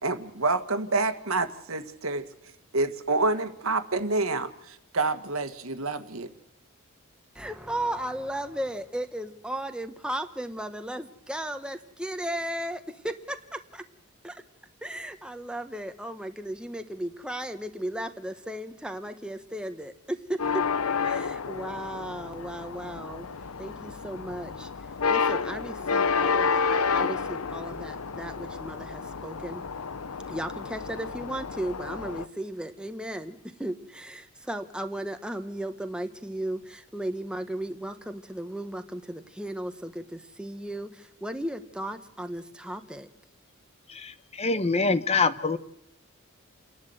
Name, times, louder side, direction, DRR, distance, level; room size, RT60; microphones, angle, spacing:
voice 1, 0.0-2.2 2.7-6.3, right 3 dB, 70° right, 9 dB, 1.7 m, -28 dB
voice 2, 7.3-13.8 14.2-14.4 14.8-20.6 21.0-23.3 23.6-24.7 25.1-29.6 30.3-43.1, right 1 dB, 5° right, 7 dB, 1.3 m, -35 dB
sound 1, 20.4-32.3, left 5 dB, 80° left, 0.8 m, -30 dB
voice 3, 44.4-45.6, left 4 dB, 30° left, 13 dB, 0.9 m, -24 dB
29.5 x 11.5 x 7.9 m, 0.80 s
head